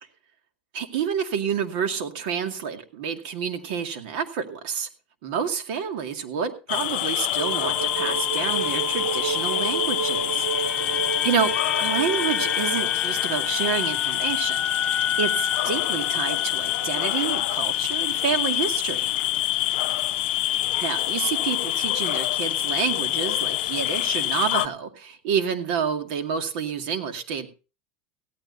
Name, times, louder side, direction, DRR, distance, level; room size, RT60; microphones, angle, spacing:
voice 1, 0.7-4.9 5.2-11.5 11.8-19.1 20.8-27.5, right 7 dB, 65° right, 6 dB, 2.2 m, -29 dB
sound 1, 6.7-24.7, left 16 dB, 80° left, 0.6 m, -26 dB
sound 2, 7.4-12.9, right 5 dB, 90° right, 5.2 m, -30 dB
sound 3, 10.0-18.3 18.6-18.8, left 7 dB, 15° left, 2.9 m, -32 dB
16.5 x 14.5 x 2.7 m, 0.33 s
supercardioid pair, 145°, 5 cm